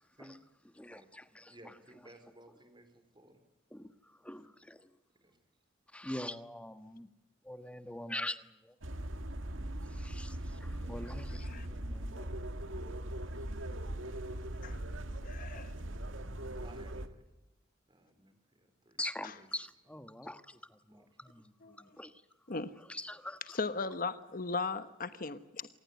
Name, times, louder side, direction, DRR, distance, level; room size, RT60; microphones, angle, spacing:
voice 1, 0.8-1.5 3.7-4.9 5.9-7.1 7.4-8.7 9.9-12.4 19.0-22.2 22.8-23.6, left 1 dB, 5° left, 10 dB, 1.3 m, -44 dB
voice 2, 1.4-3.4 4.2-4.4 5.2-5.4 16.6-17.2 17.9-20.0 20.9-21.2, right 1 dB, 25° right, 9 dB, 4.0 m, -58 dB
sound 1, 8.8-17.1, right 1 dB, 85° right, 1.9 m, -40 dB
voice 3, 15.2-15.7 19.2-19.3 21.6-21.8 22.5-22.7 23.5-25.7, left 4 dB, 45° left, 11 dB, 1.2 m, -37 dB
27.5 x 19.0 x 8.3 m, 0.98 s
head